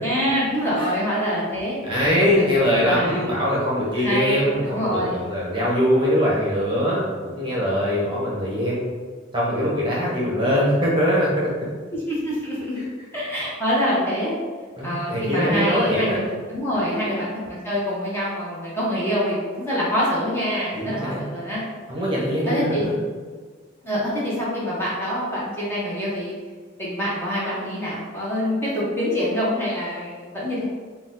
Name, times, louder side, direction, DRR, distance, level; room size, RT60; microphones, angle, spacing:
voice 1, 0.0-1.8 2.2-3.2 4.0-5.2 11.9-12.8 13.1-14.4 14.8-21.6 22.0-22.1 22.5-22.8 23.8-26.3 26.8-30.6, equal, 10° left, -8 dB, 1.1 m, -25 dB
voice 2, 1.8-8.9 9.3-11.5 14.8-16.2 20.7-21.2 21.9-23.0, equal, 25° right, -6 dB, 1.0 m, -22 dB
4.8 x 2.4 x 3.8 m, 1.5 s
head